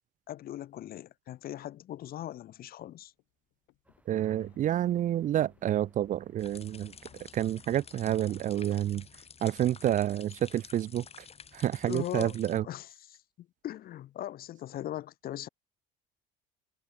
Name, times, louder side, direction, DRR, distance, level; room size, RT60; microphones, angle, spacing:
voice 1, 0.3-3.1 11.8-12.4 12.6-15.5, left 13 dB, 50° left, 0.8 m, -40 dB
sound 1, 3.0-11.2, left 21 dB, 75° left, 7.1 m, -68 dB
sound 2, 3.8-8.9, right 1 dB, 5° right, 5.3 m, -66 dB
voice 2, 4.1-6.9 7.3-9.1 9.4-11.0 11.5-12.7, right 12 dB, 40° right, 0.4 m, -29 dB
sound 3, 6.4-12.6, left 6 dB, 30° left, 4.8 m, -51 dB
cardioid pair, 105°, 20 cm